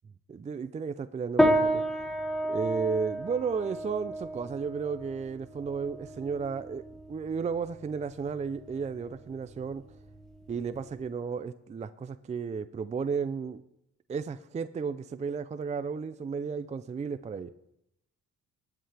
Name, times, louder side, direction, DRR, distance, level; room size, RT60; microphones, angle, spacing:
voice 1, 0.3-1.8 2.4-9.8 10.5-13.6 14.1-17.5, right 5 dB, 25° right, 13 dB, 0.4 m, -33 dB
sound 1, 1.4-11.0, equal, ahead, 1.2 m, -31 dB
19.0 x 7.9 x 3.4 m, 0.80 s
cardioid pair, 90°, 30 cm